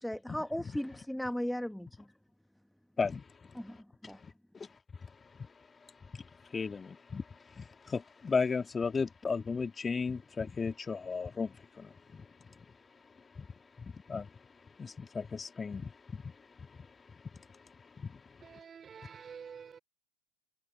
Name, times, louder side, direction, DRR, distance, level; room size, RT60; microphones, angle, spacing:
voice 1, 0.0-2.1 3.5-4.2, equal, ahead, 1.2 m, -37 dB
voice 2, 3.0-3.6 4.0-4.7 5.0-18.4, left 5 dB, 20° left, 2.0 m, -37 dB
voice 3, 18.4-19.8, right 7 dB, 25° right, 3.3 m, -48 dB
hypercardioid pair, 95°, 0 cm